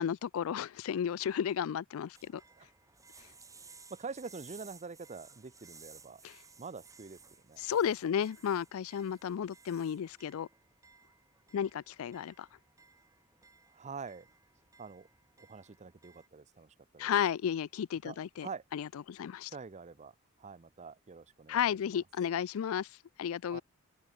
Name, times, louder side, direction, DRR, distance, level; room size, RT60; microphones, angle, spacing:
voice 1, 0.0-2.4 6.2-6.3 7.6-10.5 11.5-12.5 17.0-19.5 21.5-22.9 23.2-23.6, left 8 dB, 70° left, 0.3 m, -33 dB
sound 1, 2.1-16.3, right 4 dB, 15° right, 4.5 m, -58 dB
voice 2, 3.5-6.2 6.6-7.8 13.7-14.3 14.8-15.1 15.4-17.1 18.0-18.6 19.5-22.0 23.5-23.6, right 5 dB, 30° right, 0.6 m, -46 dB
open air
head